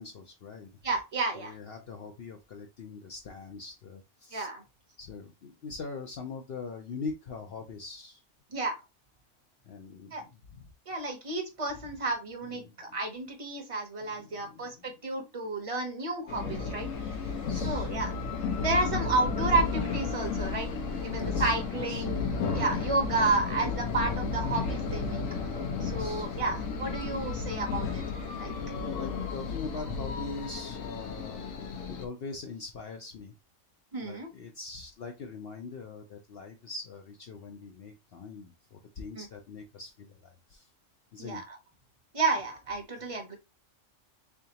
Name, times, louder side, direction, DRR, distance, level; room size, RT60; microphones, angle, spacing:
voice 1, 0.0-0.7 1.3-4.5 5.0-8.2 9.6-10.7 12.4-13.0 14.0-14.9 16.9-17.9 18.9-19.1 21.2-22.1 25.7-26.5 28.3-31.5 31.9-33.3 34.0-40.7 41.1-41.4, left 4 dB, 60° left, 3 dB, 0.7 m, -42 dB
voice 2, 0.8-1.5 4.3-4.6 8.5-8.8 10.1-10.2 10.9-17.1 17.6-18.1 18.6-20.7 21.0-22.2 22.5-25.2 25.8-28.5 33.9-34.3 39.1-39.3 41.2-41.6 42.1-43.3, right 3 dB, 30° right, 5 dB, 0.8 m, -31 dB
sound 1, 16.3-32.0, left 5 dB, 75° left, 1.1 m, -33 dB
3.7 x 3.5 x 2.8 m, 0.24 s
omnidirectional pair, 1.4 m